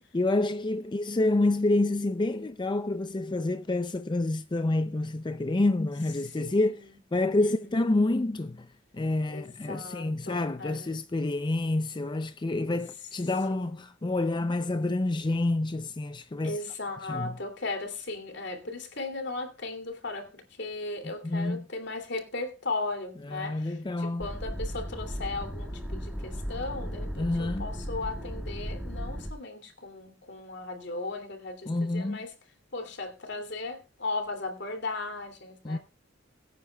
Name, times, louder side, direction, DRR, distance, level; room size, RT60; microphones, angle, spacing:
voice 1, 0.1-8.7 8.9-16.6 17.1-17.3 21.0-21.7 23.3-24.3 27.2-27.7 31.7-32.2 35.6-35.8, left 2 dB, 25° left, 0.5 m, -28 dB
voice 2, 6.2-6.8 7.4-7.9 9.3-11.0 13.5-13.9 16.4-32.3 32.7-35.8, left 3 dB, 60° left, 2.8 m, -37 dB
sound 1, 24.2-29.3, equal, 5° right, 2.4 m, -36 dB
22.5 x 9.4 x 2.3 m
head